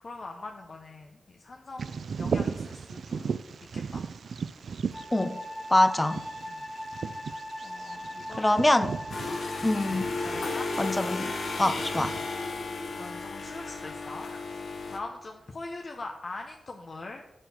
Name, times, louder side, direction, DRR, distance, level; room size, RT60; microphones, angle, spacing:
voice 1, 0.0-3.3 3.7-4.1 6.5-6.7 7.6-8.8 9.3-9.4 10.1-10.7 12.9-14.3 14.9-17.2, left 3 dB, 50° left, 0.9 m, -42 dB
Bird vocalization bird call bird song, 1.8-12.3, right 5 dB, 75° right, 0.4 m, -37 dB
Wind instrument woodwind instrument, 4.9-11.7, left 1 dB, 35° left, 2.0 m, -40 dB
voice 2, 5.7-6.2 8.4-8.9 9.6-10.1 10.8-11.3 11.6-12.1, left 1 dB, 20° left, 0.6 m, -24 dB
sound 1, 9.1-15.0, left 3 dB, 75° left, 1.3 m, -34 dB
7.6 x 6.7 x 6.4 m
cardioid pair, 80°, 0 cm